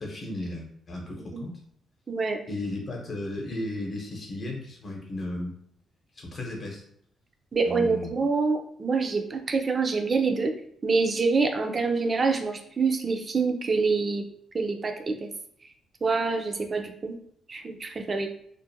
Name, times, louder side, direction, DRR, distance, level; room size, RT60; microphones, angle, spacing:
voice 1, 0.0-1.5 2.5-5.5 6.1-6.8 7.6-8.1, left 1 dB, 45° left, 0 dB, 0.9 m, -35 dB
voice 2, 2.1-2.4 7.5-10.5 10.8-14.2 14.5-15.3 16.0-17.2 17.5-18.3, right 4 dB, 40° right, 5 dB, 0.4 m, -26 dB
2.5 x 2.1 x 2.7 m, 0.68 s
cardioid pair, 80°, 0 cm